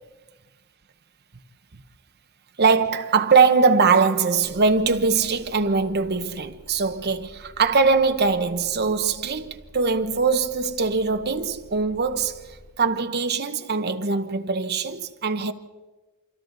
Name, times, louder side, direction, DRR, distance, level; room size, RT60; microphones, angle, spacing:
voice 1, 2.6-12.4 12.8-15.5, right 4 dB, 50° right, 1.1 m, -21 dB
sound 1, 4.3-12.7, equal, 30° right, 4.5 m, -49 dB
28.0 x 26.0 x 4.1 m
head